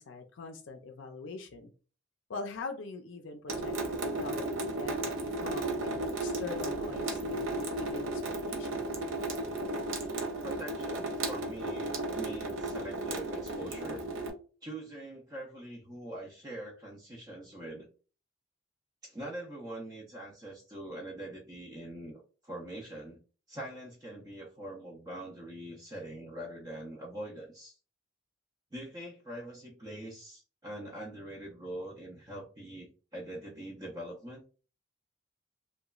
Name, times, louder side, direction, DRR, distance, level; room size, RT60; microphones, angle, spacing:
voice 1, 0.0-1.7 2.3-8.2 8.5-8.8, left 3 dB, 75° left, 4 dB, 0.4 m, -43 dB
Water tap faucet / Sink (filling or washing) / Drip, 3.5-14.3, right 2 dB, 85° right, 0.5 m, -34 dB
voice 2, 10.4-14.0 14.6-17.9 19.0-23.2 23.5-27.8 28.7-34.4, right 1 dB, 20° right, -3 dB, 0.5 m, -43 dB
2.9 x 2.2 x 2.3 m, 0.37 s
head